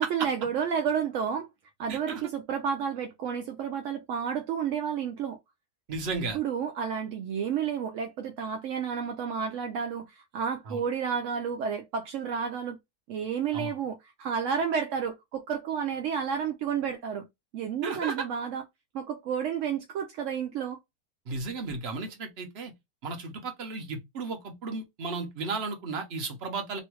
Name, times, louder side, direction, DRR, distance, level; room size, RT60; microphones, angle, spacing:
voice 1, 0.1-1.5 1.8-5.4 6.3-12.8 13.1-17.3 17.5-18.6 18.9-20.8, right 7 dB, 70° right, 0.7 m, -31 dB
voice 2, 1.9-2.2 5.9-6.4 10.7-10.8 13.5-13.7 17.8-18.3 21.3-22.7 23.0-26.8, right 4 dB, 45° right, 1.0 m, -34 dB
3.1 x 2.6 x 2.9 m
omnidirectional pair, 1.7 m